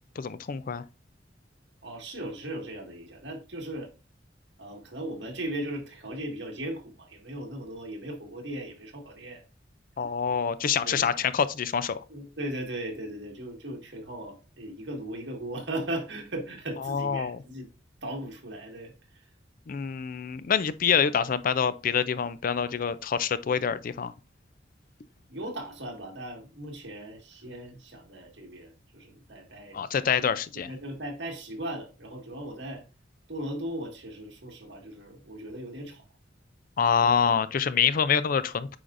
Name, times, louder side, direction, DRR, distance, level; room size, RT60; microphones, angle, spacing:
voice 1, 0.2-0.8 10.0-12.0 16.8-17.4 19.7-24.1 29.7-30.7 36.8-38.7, left 7 dB, 50° left, 0.4 m, -26 dB
voice 2, 1.8-3.9 4.6-9.4 10.8-11.1 12.1-17.7 18.0-19.3 25.3-29.9 30.2-30.3 30.6-32.8 33.3-36.0 37.0-37.4, right 1 dB, 70° right, 1.8 m, -38 dB
8.6 x 5.0 x 2.5 m
head